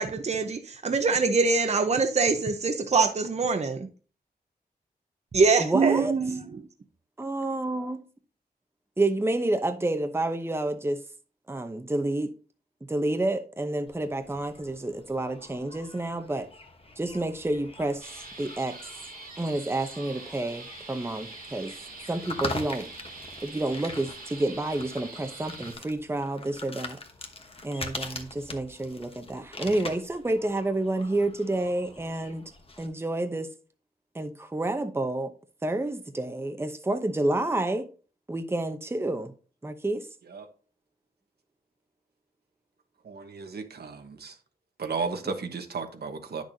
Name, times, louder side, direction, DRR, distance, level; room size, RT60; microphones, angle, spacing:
voice 1, 0.0-3.9 5.3-6.5, right 4 dB, 45° right, 0.8 m, -24 dB
voice 2, 5.6-6.1 7.2-8.0 9.0-11.0 11.5-12.3 12.9-16.5 17.0-18.8 19.4-21.7 22.1-22.9 23.4-27.0 27.6-32.4 32.8-33.5 34.1-35.3 35.6-37.9 38.3-39.3 39.6-40.1, right 2 dB, 15° right, 0.8 m, -29 dB
sound 1, 13.9-32.9, left 2 dB, 35° left, 1.1 m, -43 dB
sound 2, 18.0-25.7, right 3 dB, 60° right, 2.0 m, -44 dB
voice 3, 43.0-44.4 44.8-46.4, right 4 dB, 80° right, 1.2 m, -34 dB
10.0 x 6.3 x 2.7 m
wide cardioid pair, 100°, 16 cm